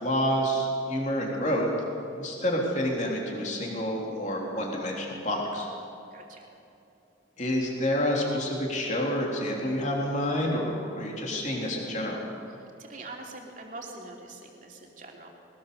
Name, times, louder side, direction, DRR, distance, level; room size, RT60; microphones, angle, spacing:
voice 1, 0.0-1.7 2.1-5.7 7.4-12.2, equal, 40° left, -1 dB, 3.4 m, -28 dB
voice 2, 6.1-6.5 12.8-15.3, right 2 dB, 45° right, 0 dB, 3.1 m, -43 dB
21.0 x 19.5 x 6.9 m, 2.8 s
head